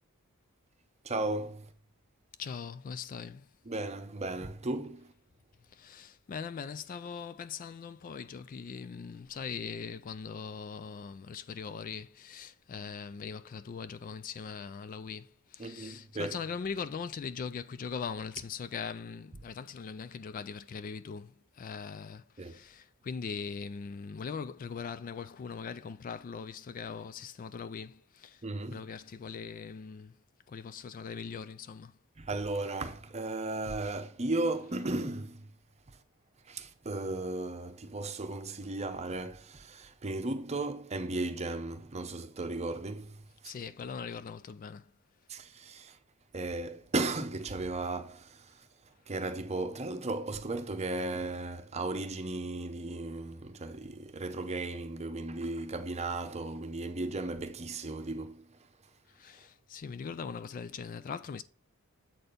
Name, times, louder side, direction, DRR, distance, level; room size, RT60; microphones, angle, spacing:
voice 1, 1.0-1.6 3.7-5.1 15.6-16.4 22.4-22.5 28.4-28.8 32.2-35.5 36.5-43.2 43.4-43.5 45.3-46.0 46.3-48.5 49.1-58.4, right 2 dB, 30° right, 0.7 m, -35 dB
voice 2, 2.4-3.5 5.7-30.1 30.5-31.9 43.4-44.9 59.1-61.4, left 6 dB, 40° left, 0.3 m, -41 dB
7.8 x 4.3 x 5.1 m
head